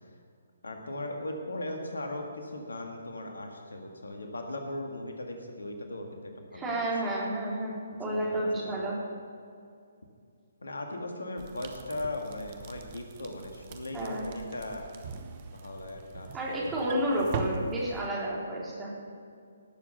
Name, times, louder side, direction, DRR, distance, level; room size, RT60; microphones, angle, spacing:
voice 1, 0.6-6.9 8.0-8.8 10.6-14.9 15.5-16.7, left 1 dB, 70° left, 3 dB, 1.9 m, -38 dB
voice 2, 6.5-9.0 13.9-14.3 16.3-18.9, right 1 dB, 15° right, -5 dB, 3.7 m, -31 dB
sound 1, 11.4-18.1, right 5 dB, 35° right, 1.1 m, -41 dB
18.0 x 7.5 x 6.7 m, 2.3 s
figure-of-eight pair, 135°, 0 cm